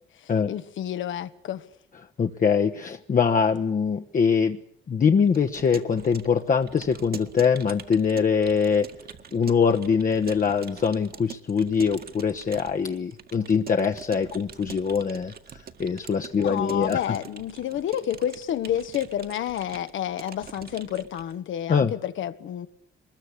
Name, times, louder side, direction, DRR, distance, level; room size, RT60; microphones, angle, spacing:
voice 1, 0.1-1.6 16.4-22.7, left 10 dB, 75° left, 1.5 m, -30 dB
voice 2, 2.2-4.6 4.9-8.9 9.3-17.0 21.7-21.9, left 6 dB, 40° left, 1.2 m, -23 dB
Keyboard (musical) / Computer keyboard, 5.3-21.3, right 7 dB, 50° right, 1.9 m, -44 dB
23.5 x 21.0 x 8.4 m
cardioid pair, 90°, 20 cm